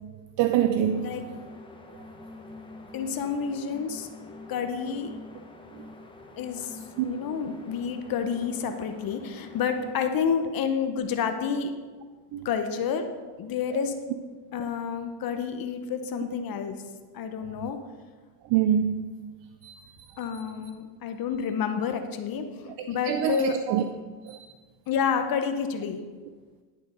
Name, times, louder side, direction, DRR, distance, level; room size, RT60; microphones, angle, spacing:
voice 1, 0.4-1.1 7.0-7.1 12.3-12.5 18.5-19.0 19.6-19.8 22.7-23.9 24.3-24.5, right 10 dB, 65° right, 9 dB, 0.5 m, -25 dB
sound 1, 0.7-10.0, left 2 dB, 10° left, 0.9 m, -46 dB
voice 2, 2.9-4.1 4.5-5.1 6.4-6.8 7.0-11.7 12.4-13.1 13.4-13.9 14.5-16.8 17.1-17.8 20.2-23.6 24.9-26.0, left 6 dB, 45° left, 7 dB, 0.7 m, -29 dB
11.0 x 3.8 x 5.1 m, 1.4 s
cardioid pair, 105°, 48 cm